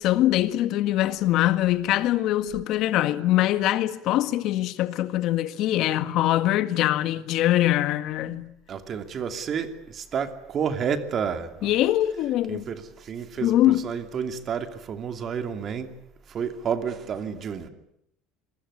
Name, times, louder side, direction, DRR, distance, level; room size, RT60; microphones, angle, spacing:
voice 1, 0.0-8.5 11.6-12.7 13.4-13.8, left 14 dB, 55° left, 1.7 m, -23 dB
voice 2, 8.7-11.8 12.5-15.9 16.3-17.7, right 7 dB, 35° right, 2.7 m, -30 dB
27.0 x 22.0 x 9.9 m
cardioid pair, 145°, 0 cm